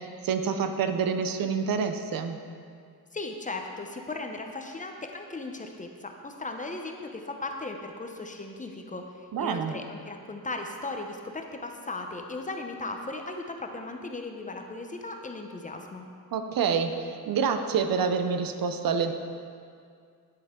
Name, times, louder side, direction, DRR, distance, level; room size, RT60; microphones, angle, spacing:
voice 1, 0.2-2.4 9.3-9.8 16.3-19.1, right 6 dB, 65° right, 8 dB, 0.7 m, -27 dB
voice 2, 3.1-16.1, left 2 dB, 20° left, 4 dB, 0.6 m, -37 dB
9.5 x 8.2 x 3.7 m, 2.2 s
cardioid pair, 120°, 38 cm